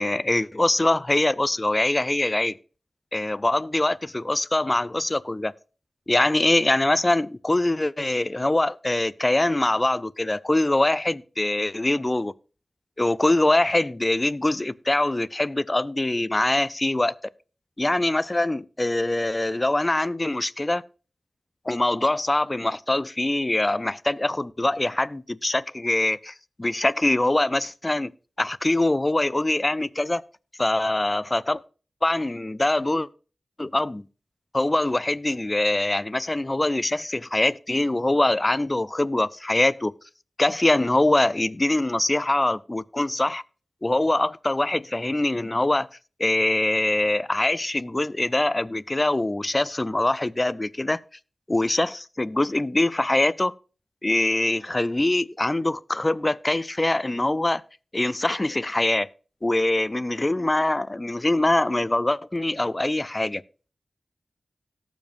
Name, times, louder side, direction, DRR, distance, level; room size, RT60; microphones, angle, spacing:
voice 1, 0.0-2.6 3.1-5.5 6.1-12.3 13.0-17.1 17.8-20.8 21.7-26.3 26.6-28.1 28.4-30.2 30.6-31.6 32.0-33.1 33.6-34.0 34.5-39.9 40.4-43.4 43.8-45.9 46.2-51.0 51.5-53.5 54.0-57.6 57.9-59.1 59.4-63.4, left 2 dB, 25° left, 0.5 m, -23 dB
18.0 x 7.3 x 2.6 m
wide cardioid pair, 65°, 0 cm